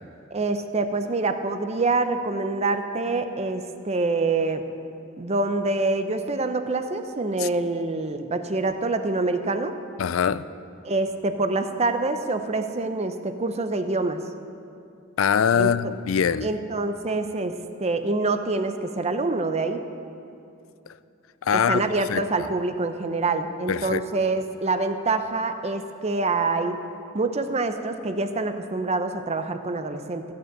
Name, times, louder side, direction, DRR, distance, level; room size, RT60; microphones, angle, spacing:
voice 1, 0.3-4.7 5.2-9.7 10.8-14.2 15.6-15.9 16.4-19.8 21.5-26.8 27.1-30.2, right 3 dB, 30° right, 0.7 m, -26 dB
voice 2, 10.0-10.5 15.2-16.5 21.4-22.2 23.7-24.0, left 7 dB, 75° left, 0.4 m, -23 dB
14.5 x 6.6 x 7.7 m
head